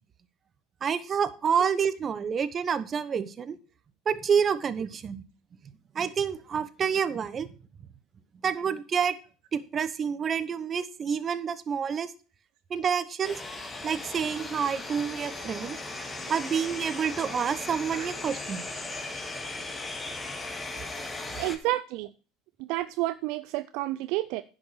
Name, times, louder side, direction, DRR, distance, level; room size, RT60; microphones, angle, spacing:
voice 1, 0.8-3.6 4.1-5.2 5.9-7.5 8.4-9.1 9.5-12.1 12.7-13.4 13.8-15.8 16.3-18.6, right 7 dB, 35° right, 1.0 m, -28 dB
sound 1, 13.2-21.6, left 2 dB, 20° left, 2.0 m, -37 dB
voice 2, 21.4-22.1 22.7-24.4, right 17 dB, 65° right, 0.4 m, -30 dB
10.5 x 6.6 x 4.7 m
hypercardioid pair, 75°, 0 cm